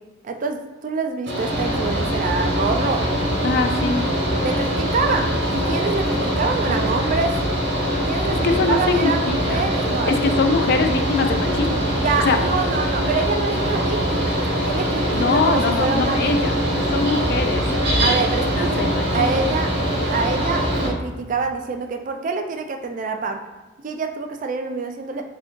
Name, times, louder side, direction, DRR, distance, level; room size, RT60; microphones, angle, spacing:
voice 1, 0.2-3.1 4.4-7.3 8.0-10.4 11.9-16.6 18.0-19.7 20.0-23.4 23.8-25.2, right 4 dB, 40° right, 5 dB, 0.3 m, -26 dB
Mechanical fan, 1.3-20.9, equal, 60° right, 0.9 m, -22 dB
voice 2, 3.4-4.0 8.2-9.7 10.1-11.8 12.2-12.4 15.1-16.5 16.9-17.6 18.0-18.1 18.6-19.3, left 4 dB, 55° left, 6 dB, 0.3 m, -23 dB
3.4 x 2.6 x 3.6 m, 1.1 s
head